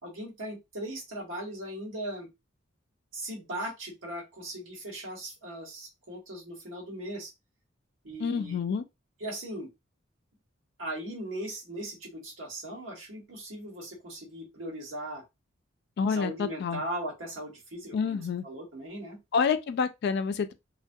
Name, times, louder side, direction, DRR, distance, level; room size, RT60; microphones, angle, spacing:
voice 1, 0.0-2.3 3.1-7.3 8.0-8.6 9.2-9.7 10.8-15.2 16.2-19.2, right 1 dB, 85° right, 1.1 m, -38 dB
voice 2, 8.2-8.8 16.0-16.8 17.9-18.4 19.3-20.5, left 6 dB, 55° left, 0.3 m, -28 dB
2.3 x 2.2 x 2.6 m
head